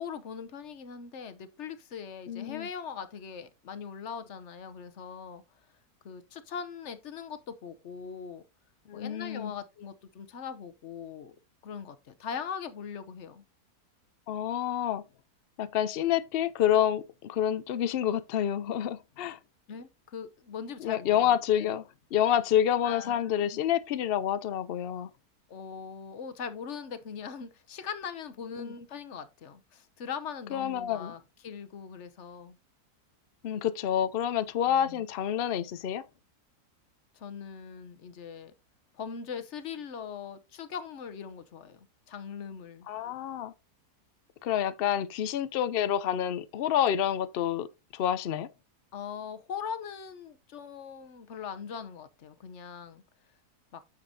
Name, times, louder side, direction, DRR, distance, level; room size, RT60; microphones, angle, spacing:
voice 1, 0.0-5.4 6.0-8.4 8.9-11.4 11.6-13.4 19.7-21.8 22.8-23.6 25.5-32.6 34.7-35.0 37.1-38.5 38.9-42.9 48.9-53.0 53.7-53.8, left 7 dB, 55° left, 1.0 m, -41 dB
voice 2, 2.3-2.7 8.9-9.5 14.3-15.0 15.6-19.4 20.8-21.8 22.1-25.1 28.6-28.7 30.5-31.1 33.4-36.0 42.9-43.5 44.4-47.7 47.9-48.5, left 10 dB, 85° left, 0.5 m, -28 dB
9.5 x 6.7 x 2.7 m
omnidirectional pair, 1.7 m